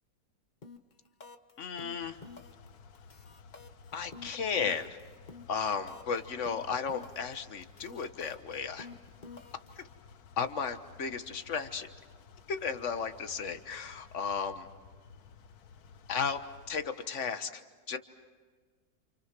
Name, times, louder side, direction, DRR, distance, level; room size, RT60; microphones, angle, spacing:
sound 1, 0.6-0.9 1.2-1.5 1.8-2.7 2.9-6.2 6.4-7.3 7.6-9.8, left 4 dB, 30° left, 1.3 m, -49 dB
voice 1, 1.6-2.2 3.9-5.0 5.5-8.9 9.8-9.9 10.4-11.9 12.5-14.7 16.1-16.4 16.7-17.6 17.9-18.0, left 6 dB, 50° left, 9 dB, 1.6 m, -34 dB
sound 2, 2.0-17.1, left 5 dB, 80° left, 1.5 m, -55 dB
30.0 x 28.0 x 6.1 m, 1.5 s
omnidirectional pair, 1.6 m